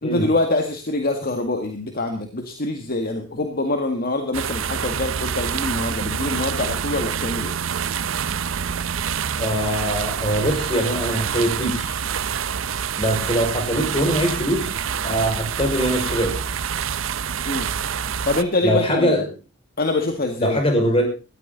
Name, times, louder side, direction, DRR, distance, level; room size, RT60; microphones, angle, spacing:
voice 1, 0.0-7.6 17.5-17.7 18.3-19.1 19.8-20.6, left 2 dB, 50° left, 5 dB, 1.9 m, -24 dB
sound 1, 4.3-18.4, right 7 dB, 75° right, 0.7 m, -27 dB
voice 2, 9.4-12.0 13.0-14.7 15.0-16.4 18.6-19.3 20.4-21.0, equal, 30° left, 3 dB, 5.5 m, -22 dB
18.0 x 14.5 x 4.0 m, 0.33 s
head